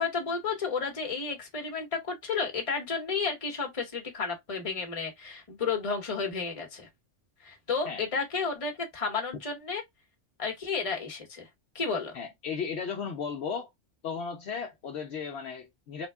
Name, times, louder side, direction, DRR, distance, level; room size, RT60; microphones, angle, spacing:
voice 1, 0.0-6.9 7.4-9.8 10.4-11.5 11.7-12.2, left 5 dB, 30° left, 1.0 m, -32 dB
voice 2, 12.1-13.7 14.0-16.1, left 6 dB, 65° left, 0.9 m, -35 dB
3.4 x 2.2 x 3.4 m
omnidirectional pair, 1.2 m